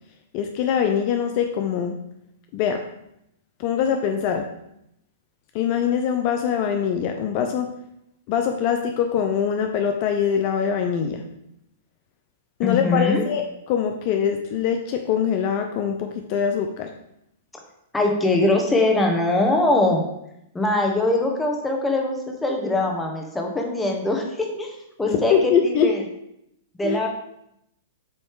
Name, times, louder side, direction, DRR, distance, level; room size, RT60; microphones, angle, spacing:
voice 1, 0.3-2.0 2.5-2.8 3.6-4.5 5.5-7.7 8.3-11.2 12.6-16.9 25.1-25.9 26.8-27.0, left 7 dB, 45° left, 5 dB, 0.6 m, -23 dB
voice 2, 12.6-13.2 17.9-20.0 20.5-24.7 25.0-26.0 26.8-27.1, left 2 dB, 10° left, 2 dB, 1.3 m, -22 dB
7.9 x 3.2 x 4.7 m, 0.79 s
hypercardioid pair, 125°, 0 cm